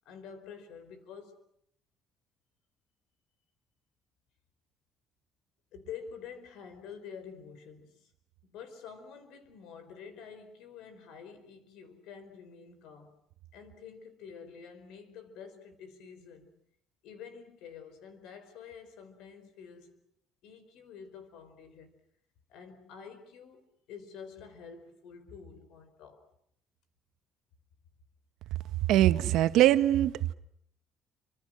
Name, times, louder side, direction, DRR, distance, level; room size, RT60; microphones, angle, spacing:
voice 1, 0.0-1.4 5.7-8.1 8.4-13.2 13.5-16.5 17.0-20.0 20.4-21.9 22.5-26.2, left 6 dB, 85° left, 4.6 m, -48 dB
voice 2, 28.9-30.3, right 13 dB, 80° right, 1.1 m, -23 dB
29.5 x 26.0 x 6.4 m
cardioid pair, 125°, 0 cm